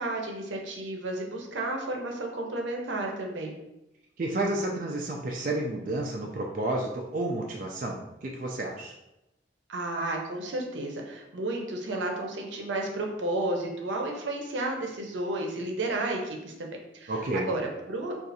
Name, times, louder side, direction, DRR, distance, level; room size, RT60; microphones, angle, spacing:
voice 1, 0.0-3.6 9.7-17.1 17.4-18.1, right 2 dB, 85° right, 1 dB, 0.6 m, -32 dB
voice 2, 4.2-8.9 17.1-17.5, right 2 dB, 45° right, 0 dB, 0.3 m, -31 dB
2.6 x 2.4 x 4.0 m, 0.89 s
head